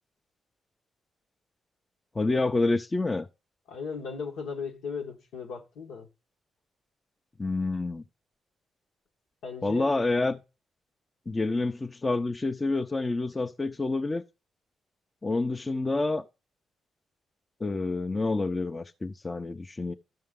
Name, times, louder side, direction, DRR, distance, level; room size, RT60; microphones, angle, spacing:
voice 1, 2.1-3.3 7.4-8.0 9.6-10.4 11.3-14.2 15.2-16.2 17.6-19.9, left 3 dB, 30° left, 0.8 m, -28 dB
voice 2, 3.7-6.1 9.4-9.9, left 5 dB, 80° left, 1.4 m, -37 dB
12.5 x 5.5 x 3.8 m
supercardioid pair, 45°, 0 cm